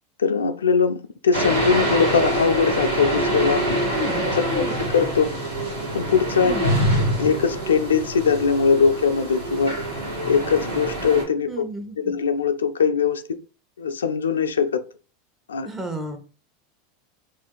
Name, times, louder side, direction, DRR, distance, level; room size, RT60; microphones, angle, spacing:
voice 1, 0.2-3.8 4.2-5.3 5.9-6.7 7.2-9.8 10.3-11.7 12.0-13.4 13.8-14.8 15.5-15.7, left 6 dB, 85° left, 0.3 m, -21 dB
sound 1, 1.3-11.2, right 1 dB, 85° right, 1.4 m, -25 dB
voice 2, 3.9-4.8 6.4-6.8 11.5-12.0 15.6-16.2, right 1 dB, 20° right, 1.0 m, -32 dB
2.8 x 2.5 x 3.8 m
hypercardioid pair, 90°, 0 cm